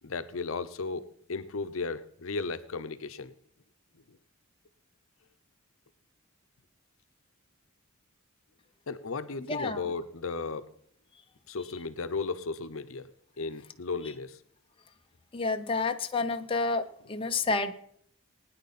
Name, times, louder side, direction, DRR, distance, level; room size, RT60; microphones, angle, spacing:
voice 1, 0.0-3.3 4.1-4.2 8.9-10.7 11.5-13.1 13.4-14.4, left 4 dB, 70° left, 11 dB, 0.8 m, -35 dB
voice 2, 9.5-9.8 15.3-17.7, left 3 dB, 25° left, 5 dB, 0.6 m, -29 dB
20.5 x 9.5 x 4.2 m, 0.67 s
head